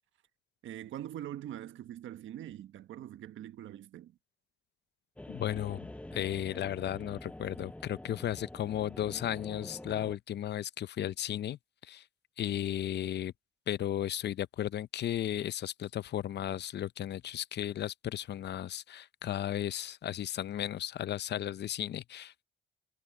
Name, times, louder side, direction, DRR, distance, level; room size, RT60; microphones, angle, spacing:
voice 1, 0.6-4.2, right 12 dB, 75° right, 1.3 m, -43 dB
sound 1, 5.2-10.2, left 1 dB, 5° left, 0.7 m, -46 dB
voice 2, 5.3-11.6 11.9-12.0 12.4-13.3 13.7-22.4, left 11 dB, 60° left, 0.7 m, -35 dB
cardioid pair, 90°, 20 cm